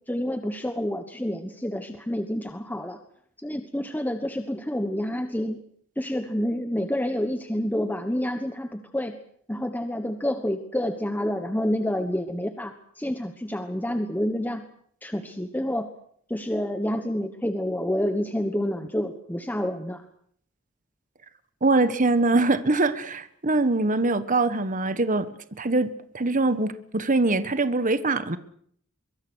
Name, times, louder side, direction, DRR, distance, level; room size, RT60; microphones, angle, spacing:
voice 1, 0.1-3.0 3.4-5.6 6.0-9.1 9.5-14.6 15.0-15.9 16.3-20.0, left 1 dB, 10° left, 7 dB, 1.3 m, -28 dB
voice 2, 21.6-25.2 25.6-28.4, right 2 dB, 40° right, 12 dB, 1.4 m, -23 dB
24.0 x 23.0 x 6.4 m, 0.64 s
head